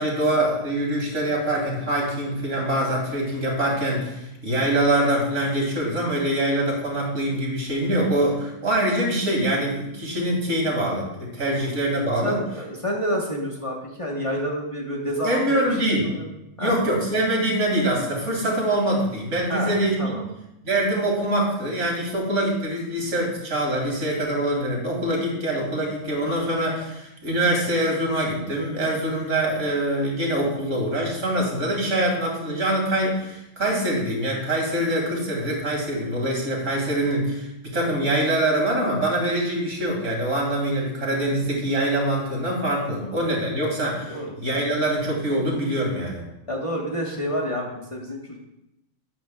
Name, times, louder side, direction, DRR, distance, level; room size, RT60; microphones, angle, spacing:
voice 1, 0.0-12.4 15.2-16.1 16.6-20.2 20.6-46.2, right 1 dB, 70° right, -1 dB, 2.5 m, -24 dB
voice 2, 12.2-16.3 16.6-16.7 19.5-19.7 20.0-20.2 43.0-43.2 44.1-44.3 46.5-48.4, equal, 25° left, -2 dB, 1.2 m, -29 dB
11.5 x 8.6 x 2.3 m, 0.87 s
omnidirectional pair, 1.3 m